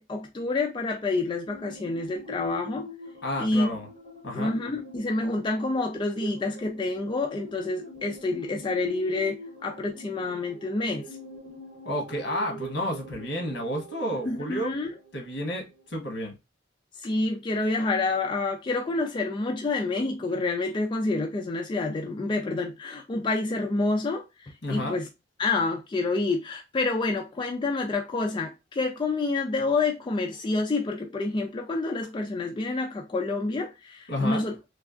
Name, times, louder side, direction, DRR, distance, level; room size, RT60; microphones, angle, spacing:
voice 1, 0.0-2.9 3.4-3.7 4.3-9.3 9.6-11.0 14.3-14.9 17.0-25.1 25.4-34.5, left 3 dB, 25° left, 0.3 m, -28 dB
sound 1, 1.5-15.9, right 1 dB, 50° right, 1.3 m, -44 dB
voice 2, 3.2-3.9 4.2-4.5 11.8-14.8 15.1-16.3 24.6-25.0 34.1-34.4, left 1 dB, 70° left, 1.2 m, -31 dB
3.2 x 2.3 x 2.4 m
head